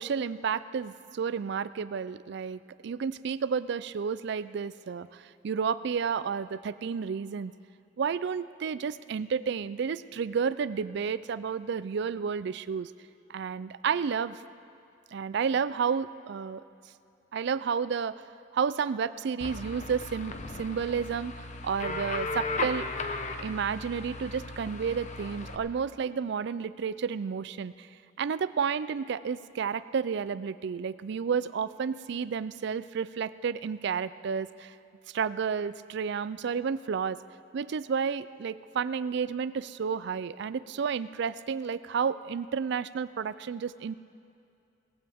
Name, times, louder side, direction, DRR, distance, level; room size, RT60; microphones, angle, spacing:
voice 1, 0.0-7.5 8.0-12.9 13.3-14.4 15.1-16.6 17.3-18.3 18.5-22.9 23.4-27.9 28.2-34.8 35.1-37.2 37.5-43.9, right 6 dB, 60° right, 16 dB, 0.4 m, -31 dB
sound 1, 19.4-25.6, left 3 dB, 40° left, 0.8 m, -36 dB
19.0 x 15.5 x 3.5 m, 2.6 s
head